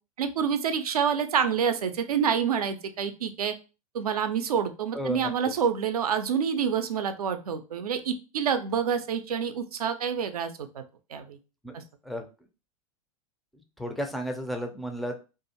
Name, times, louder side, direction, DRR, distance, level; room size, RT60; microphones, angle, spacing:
voice 1, 0.2-3.5 3.9-10.8 11.1-11.4 11.7-11.8, right 7 dB, 70° right, 9 dB, 0.5 m, -27 dB
voice 2, 4.9-5.3 11.6-12.3 13.8-15.2, equal, ahead, 3 dB, 0.3 m, -33 dB
2.5 x 2.3 x 2.7 m, 0.32 s
figure-of-eight pair, 95°, 20 cm